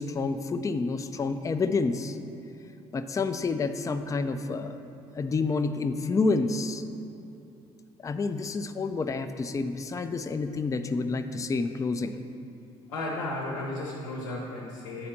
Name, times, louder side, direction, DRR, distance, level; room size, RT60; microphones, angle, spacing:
voice 1, 0.0-2.2 2.9-4.8 5.1-6.8 8.0-12.2, left 3 dB, 20° left, 9 dB, 0.4 m, -29 dB
voice 2, 12.9-15.1, left 2 dB, 80° left, -2 dB, 0.9 m, -34 dB
9.6 x 4.2 x 4.2 m, 2.8 s
figure-of-eight pair, 50°, 17 cm